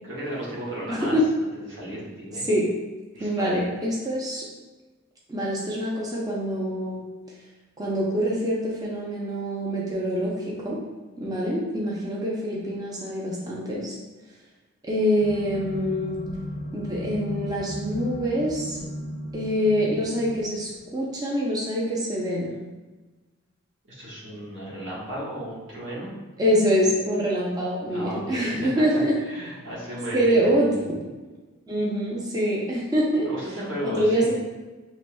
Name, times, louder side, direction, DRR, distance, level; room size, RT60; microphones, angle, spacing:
voice 1, 0.1-1.2 1.7-2.4 3.1-3.6 23.9-26.1 27.9-28.8 29.3-30.8 33.2-34.3, right 1 dB, 60° right, -8 dB, 1.4 m, -34 dB
voice 2, 0.9-1.2 2.4-2.7 3.2-4.4 5.3-7.1 7.8-10.8 11.2-14.0 14.8-16.2 16.7-18.8 19.3-22.5 26.4-29.1 30.1-30.7 31.7-33.3 33.8-34.3, equal, 20° right, -4 dB, 0.6 m, -25 dB
sound 1, 15.2-20.9, equal, 35° left, 0.5 m, -36 dB
5.7 x 3.0 x 2.2 m, 1.2 s
head